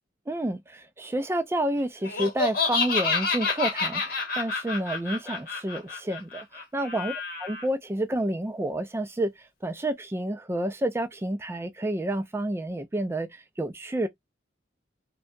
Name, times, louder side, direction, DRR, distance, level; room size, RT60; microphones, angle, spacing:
voice 1, 0.3-7.1 7.4-9.3 9.6-14.1, right 1 dB, 15° right, 0.3 m, -29 dB
Laughter, 2.0-7.6, left 4 dB, 45° left, 0.9 m, -29 dB
2.7 x 2.2 x 2.4 m
head